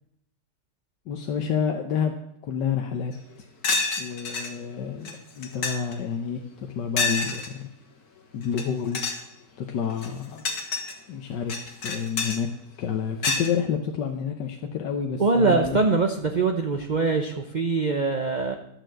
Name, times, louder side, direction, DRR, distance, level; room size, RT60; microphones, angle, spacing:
voice 1, 1.1-2.1 2.4-3.1 4.0-7.7 8.3-9.0 9.6-10.4 11.1-12.5 12.8-15.8, left 7 dB, 90° left, 3 dB, 1.6 m, -29 dB
sound 1, 3.1-3.2 3.6-4.5 5.0-5.1 5.4-5.9 7.0-7.5 8.4-8.6 8.9-9.2 9.9-10.9 11.5-12.4 13.2-13.5, left 4 dB, 65° left, 2.0 m, -27 dB
voice 2, 15.2-18.5, right 3 dB, 40° right, 5 dB, 0.7 m, -23 dB
12.5 x 6.7 x 7.7 m, 0.78 s
omnidirectional pair, 1.8 m